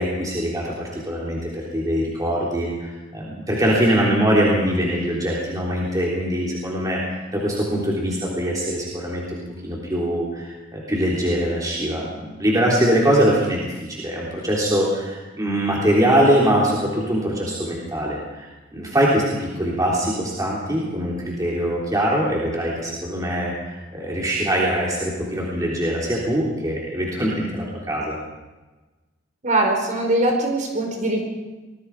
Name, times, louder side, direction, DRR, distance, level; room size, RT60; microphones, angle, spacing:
voice 1, 0.0-28.2, equal, 20° right, -4 dB, 3.6 m, -23 dB
voice 2, 29.4-31.2, right 2 dB, 40° right, 2 dB, 5.0 m, -21 dB
26.5 x 20.0 x 4.9 m, 1.2 s
head